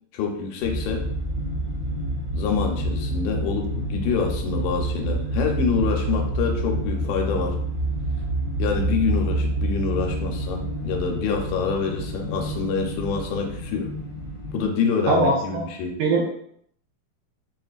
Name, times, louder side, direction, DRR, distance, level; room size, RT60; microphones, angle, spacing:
voice 1, 0.1-1.1 2.3-7.6 8.6-13.9 14.5-16.0, left 5 dB, 85° left, 2 dB, 2.6 m, -26 dB
sound 1, 0.6-14.6, right 1 dB, 70° left, 1.3 m, -28 dB
voice 2, 15.1-15.6 16.0-16.3, right 2 dB, 80° right, -1 dB, 2.0 m, -21 dB
6.0 x 2.5 x 2.3 m, 0.67 s
omnidirectional pair, 4.3 m